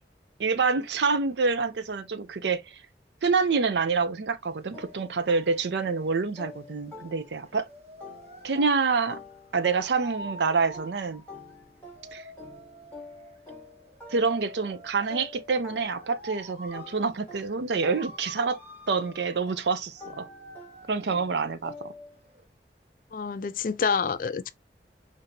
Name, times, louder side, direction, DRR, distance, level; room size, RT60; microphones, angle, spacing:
voice 1, 0.4-2.8 3.2-7.7 8.4-9.2 9.5-11.2 12.1-12.2 14.1-18.6 18.9-20.3 20.9-21.9, right 4 dB, 80° right, 0.5 m, -27 dB
sound 1, 4.4-22.5, right 1 dB, 35° right, 1.0 m, -47 dB
sound 2, 4.7-7.6 8.0-16.4 16.7-22.2, left 3 dB, 5° left, 1.3 m, -48 dB
voice 2, 23.1-24.5, left 5 dB, 50° left, 0.3 m, -27 dB
5.1 x 2.7 x 2.7 m
head